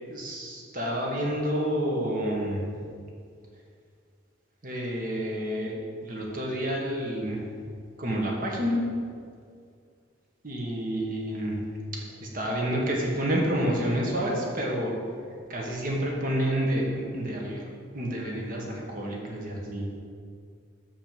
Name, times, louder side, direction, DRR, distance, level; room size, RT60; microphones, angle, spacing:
voice 1, 0.1-2.8 4.6-5.7 6.0-7.5 8.0-8.8 10.4-11.7 12.2-14.9 15.5-17.6 17.9-19.9, equal, 45° right, -2 dB, 1.5 m, -29 dB
6.0 x 5.6 x 6.9 m, 2.1 s
head